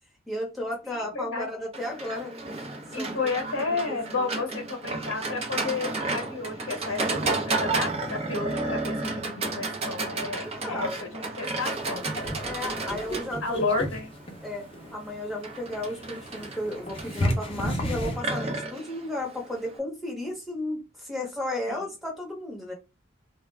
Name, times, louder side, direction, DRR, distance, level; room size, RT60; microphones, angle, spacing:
voice 1, 0.3-2.3 3.0-3.3 3.7-4.3 10.4-11.1 12.4-13.6 14.4-14.6 14.9-22.7, left 1 dB, ahead, 0.8 m, -34 dB
voice 2, 0.8-1.5 2.9-12.1 13.4-14.1 21.7-21.8, left 3 dB, 70° left, 0.8 m, -32 dB
Livestock farm animals working animals, 1.7-19.8, right 3 dB, 30° right, 0.5 m, -33 dB
sound 1, 11.7-18.2, equal, 25° left, 0.5 m, -33 dB
2.4 x 2.1 x 3.2 m
head